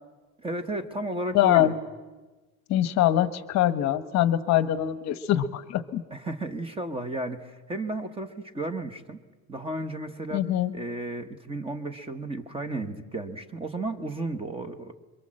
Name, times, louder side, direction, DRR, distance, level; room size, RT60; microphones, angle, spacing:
voice 1, 0.4-1.8 6.1-9.2 9.5-14.9, right 2 dB, 15° right, 9 dB, 1.1 m, -33 dB
voice 2, 1.3-1.7 2.7-6.0 10.3-10.7, left 12 dB, 45° left, 12 dB, 1.1 m, -23 dB
27.0 x 23.5 x 7.6 m, 1.2 s
cardioid pair, 160°, 38 cm